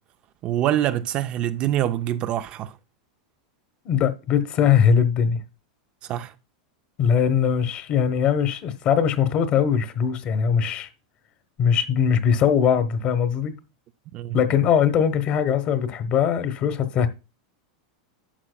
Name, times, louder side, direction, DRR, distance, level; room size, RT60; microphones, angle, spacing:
voice 1, 0.4-2.8 6.0-6.3 14.1-14.4, right 12 dB, 35° right, 0.4 m, -25 dB
voice 2, 3.8-5.4 7.0-10.9 11.6-13.6 14.3-17.1, left 7 dB, 35° left, 1.0 m, -21 dB
11.5 x 7.4 x 2.2 m
supercardioid pair, 150°, 3 cm